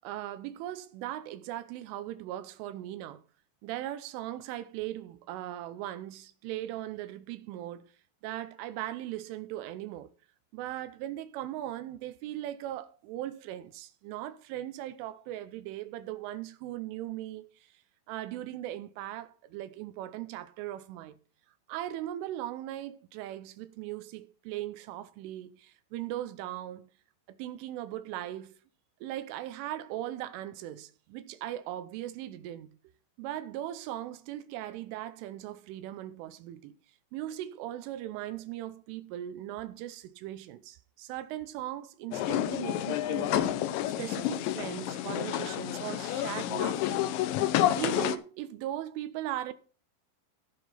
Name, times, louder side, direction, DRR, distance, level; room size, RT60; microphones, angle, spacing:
voice 1, 0.0-3.2 3.6-7.9 8.2-10.1 10.5-17.7 18.1-21.1 21.7-26.9 27.3-28.6 29.0-32.8 33.2-36.8 37.1-43.5 43.9-47.4 47.7-49.5, right 13 dB, 80° right, 3.2 m, -39 dB
sound 1, 42.1-48.2, left 12 dB, 80° left, 2.8 m, -29 dB
16.5 x 5.9 x 4.2 m
omnidirectional pair, 5.8 m